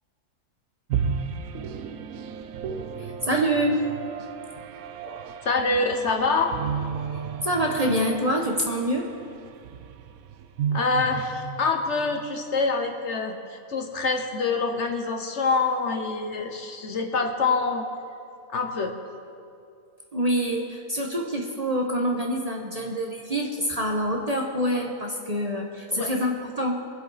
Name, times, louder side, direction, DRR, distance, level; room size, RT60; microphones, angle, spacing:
sound 1, 0.9-12.5, right 7 dB, 75° right, 1.1 m, -34 dB
voice 1, 3.0-3.8 5.0-5.4 7.4-9.1 20.1-26.9, equal, 30° right, 0 dB, 0.9 m, -26 dB
voice 2, 5.4-6.5 10.7-17.8 18.5-19.0 25.9-26.1, left 4 dB, 55° left, 4 dB, 1.1 m, -25 dB
22.5 x 7.8 x 4.1 m, 2.5 s
omnidirectional pair, 1.5 m